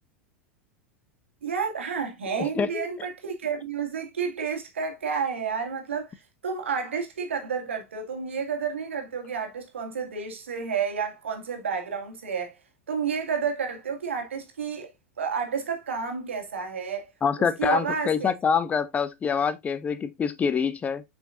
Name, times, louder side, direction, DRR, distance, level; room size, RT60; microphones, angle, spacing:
voice 1, 1.4-6.2 6.4-12.6 12.9-14.9 15.2-17.1 17.6-18.3, right 6 dB, 70° right, 1.9 m, -30 dB
voice 2, 2.4-2.9 17.2-21.0, left 6 dB, 20° left, 0.9 m, -26 dB
7.4 x 5.5 x 2.5 m
figure-of-eight pair, 85°, 7 cm